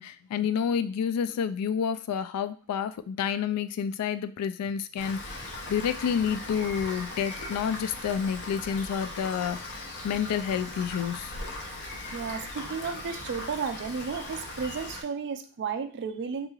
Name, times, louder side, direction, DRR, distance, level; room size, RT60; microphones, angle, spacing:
voice 1, 0.0-11.3, left 7 dB, 85° left, 0.3 m, -29 dB
Rain, 5.0-15.0, left 2 dB, 50° left, 0.6 m, -39 dB
voice 2, 11.8-16.5, right 6 dB, 50° right, 0.4 m, -33 dB
3.7 x 3.0 x 2.3 m
head